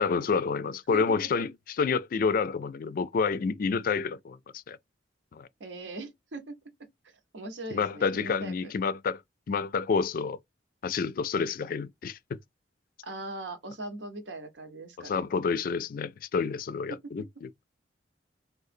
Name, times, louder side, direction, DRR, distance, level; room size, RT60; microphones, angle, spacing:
voice 1, 0.0-4.8 5.3-5.5 7.7-9.2 9.5-10.4 10.8-12.4 15.0-17.5, left 5 dB, 50° left, 0.3 m, -29 dB
voice 2, 0.9-1.3 5.6-6.6 7.0-8.6 13.0-15.3 16.9-17.1, right 2 dB, 90° right, 0.9 m, -40 dB
3.7 x 2.3 x 2.5 m
head